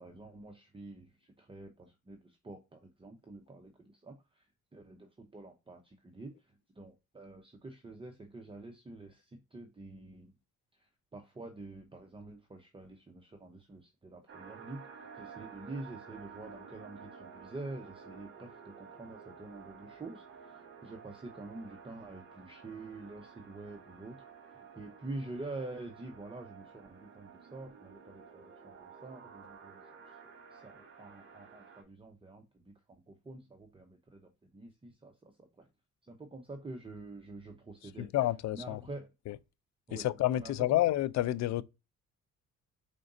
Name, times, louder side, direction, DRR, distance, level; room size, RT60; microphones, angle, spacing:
voice 1, 0.0-4.5 4.7-6.3 6.8-10.3 10.8-24.2 24.4-29.8 30.5-32.7 33.1-35.5 36.1-38.1 38.5-39.1 39.9-40.1 40.4-40.8, right 2 dB, 20° right, 0.7 m, -47 dB
sound 1, 14.3-31.8, right 6 dB, 40° right, 1.6 m, -52 dB
voice 2, 38.0-38.8 39.3-39.4 39.9-41.6, left 14 dB, 65° left, 0.4 m, -29 dB
5.1 x 3.8 x 2.5 m
cardioid pair, 90°, 30 cm